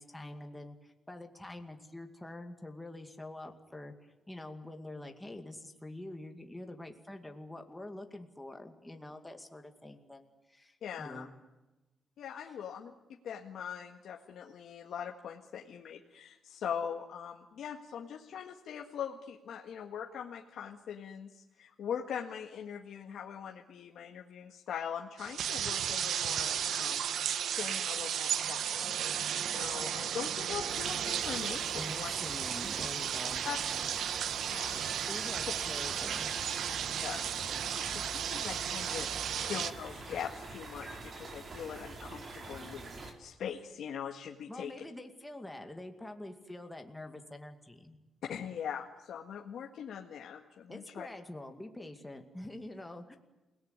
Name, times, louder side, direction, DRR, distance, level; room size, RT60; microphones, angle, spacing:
voice 1, 0.0-11.3 31.7-33.5 35.1-36.4 44.5-48.0 50.7-53.2, left 1 dB, 10° left, 4 dB, 2.2 m, -46 dB
voice 2, 10.8-11.3 12.2-28.8 29.1-32.1 33.5-33.6 34.5-35.1 37.0-39.1 39.3-44.7 48.3-51.1, left 8 dB, 70° left, 2 dB, 1.8 m, -42 dB
sound 1, 25.2-39.7, right 9 dB, 70° right, 1.1 m, -34 dB
sound 2, 30.7-43.1, right 2 dB, 40° right, 4.3 m, -45 dB
28.5 x 18.5 x 9.8 m, 1.1 s
cardioid pair, 145°, 0 cm